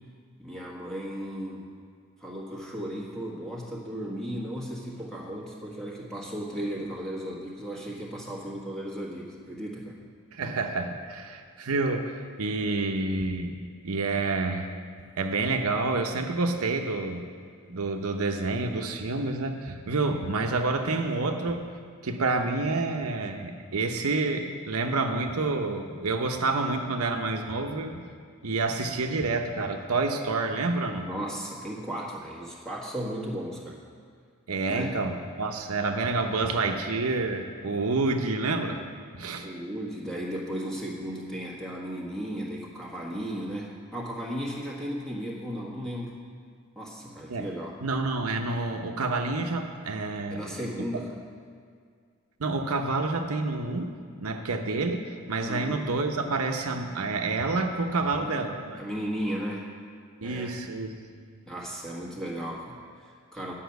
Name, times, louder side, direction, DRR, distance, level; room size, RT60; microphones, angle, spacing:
voice 1, 0.4-1.7 2.2-10.0 31.0-33.8 34.7-35.1 39.4-46.1 46.7-47.8 50.3-51.2 55.4-55.8 58.1-58.4 58.8-59.7 60.2-60.5 61.5-63.5, equal, 5° left, -4 dB, 1.5 m, -35 dB
voice 2, 10.3-13.6 13.8-14.7 15.2-17.3 17.7-21.6 22.0-28.0 28.4-31.1 34.5-38.8 39.1-39.5 47.3-47.5 47.8-50.4 52.4-58.8 60.2-60.9, right 3 dB, 75° right, 4 dB, 0.8 m, -28 dB
10.0 x 5.7 x 8.0 m, 2.1 s
head